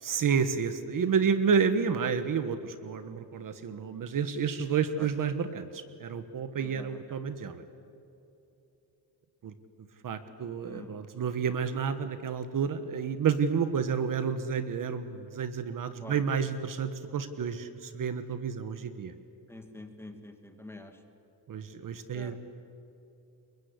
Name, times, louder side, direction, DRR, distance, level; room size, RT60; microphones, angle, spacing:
voice 1, 0.0-7.6 9.4-9.5 10.0-19.1 21.5-22.4, right 6 dB, 55° right, 11 dB, 1.4 m, -30 dB
voice 2, 19.5-20.9 22.1-22.4, left 2 dB, 5° left, 5 dB, 2.0 m, -46 dB
29.5 x 23.0 x 8.4 m, 2.9 s
wide cardioid pair, 175°, 40 cm